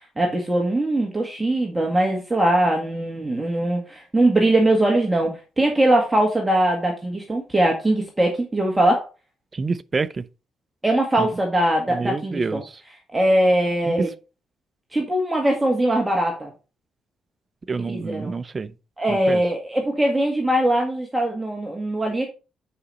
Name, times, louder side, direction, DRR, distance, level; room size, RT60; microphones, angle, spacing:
voice 1, 0.0-9.1 10.8-12.6 13.1-14.1 14.9-16.5 17.9-18.3 19.0-22.3, right 1 dB, 15° right, 1.9 m, -21 dB
voice 2, 9.5-10.3 11.2-11.3 11.9-12.6 13.8-14.1 17.7-18.7 19.1-19.4, right 4 dB, 30° right, 0.6 m, -27 dB
9.7 x 5.1 x 4.2 m
cardioid pair, 90°, 0 cm